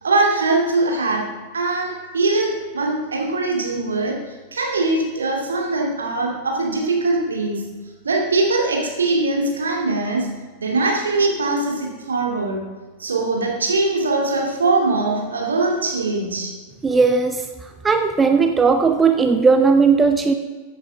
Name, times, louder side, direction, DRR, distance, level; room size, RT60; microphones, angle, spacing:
voice 1, 0.0-7.7 8.0-10.3 10.6-12.6 13.0-16.5, right 3 dB, 70° right, 0 dB, 2.4 m, -22 dB
voice 2, 16.8-20.3, right 5 dB, 15° right, 6 dB, 0.7 m, -17 dB
14.0 x 8.7 x 3.6 m, 1.4 s
figure-of-eight pair, 90°, 0 cm